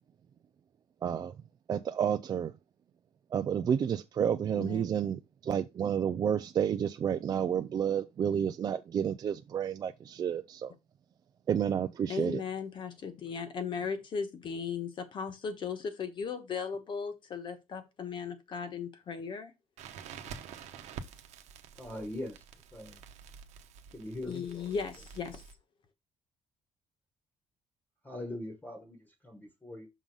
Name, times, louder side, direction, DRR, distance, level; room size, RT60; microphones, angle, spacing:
voice 1, 1.0-1.3 1.7-2.5 3.3-10.7 11.5-12.4, right 8 dB, 35° right, 0.4 m, -30 dB
voice 2, 12.1-19.5 24.3-25.4, left 6 dB, 45° left, 1.3 m, -37 dB
Crackle, 19.8-25.6, right 7 dB, 85° right, 1.0 m, -48 dB
voice 3, 21.7-22.4 22.7-23.0 23.9-24.4 28.0-29.9, left 1 dB, 15° left, 1.2 m, -41 dB
6.2 x 3.8 x 5.4 m
cardioid pair, 150°, 11 cm